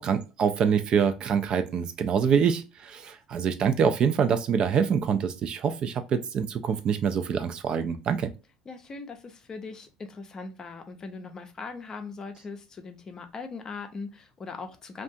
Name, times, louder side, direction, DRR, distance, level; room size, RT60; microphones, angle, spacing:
voice 1, 0.0-8.3, right 7 dB, 45° right, 9 dB, 0.3 m, -25 dB
voice 2, 8.7-15.0, left 4 dB, 30° left, 7 dB, 0.5 m, -40 dB
2.5 x 2.3 x 2.6 m, 0.30 s
cardioid pair, 120°, 2 cm